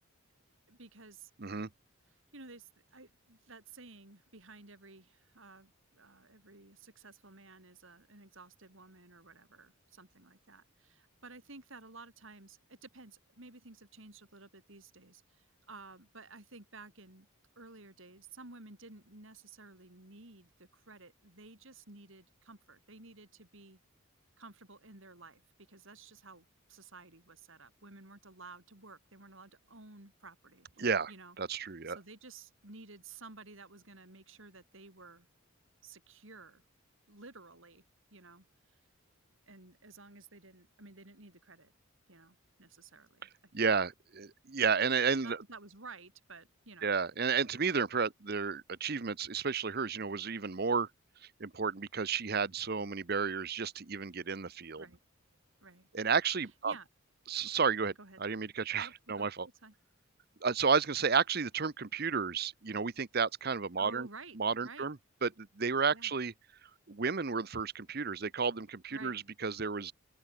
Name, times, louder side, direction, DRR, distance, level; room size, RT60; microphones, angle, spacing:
voice 1, 0.7-1.3 2.1-17.3 17.6-23.8 24.4-25.4 25.7-31.4 31.9-35.3 35.8-36.6 37.1-37.8 38.1-38.5 39.5-41.7 42.1-43.2 45.2-46.9 54.8-55.0 55.6-55.9 56.6-56.9 58.0-58.2 58.8-59.3 59.6-59.7 63.8-64.4 64.6-64.9 65.9-66.1 68.9-69.2, right 3 dB, 65° right, 4.2 m, -53 dB
voice 2, 1.4-1.7 30.8-31.1 31.4-32.0 43.5-45.4 46.8-50.9 51.4-54.8 55.9-56.7 57.3-57.9 58.2-59.5 60.4-64.1 64.4-65.0 65.2-66.3 66.9-69.9, right 5 dB, 45° right, 0.9 m, -32 dB
open air
head